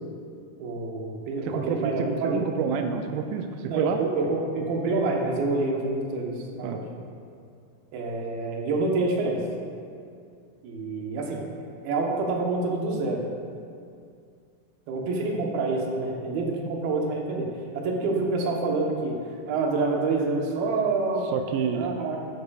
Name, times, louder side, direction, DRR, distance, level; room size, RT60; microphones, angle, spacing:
voice 1, 0.6-2.5 3.7-6.8 7.9-9.4 10.6-11.4 11.8-13.2 14.9-17.5 17.7-19.1 19.5-21.3 21.7-22.2, right 3 dB, 70° right, 0 dB, 2.7 m, -27 dB
voice 2, 1.5-4.0 6.6-6.8 21.3-22.0, right 6 dB, 85° right, 5 dB, 2.1 m, -28 dB
12.0 x 10.5 x 2.3 m, 2.4 s
omnidirectional pair, 4.9 m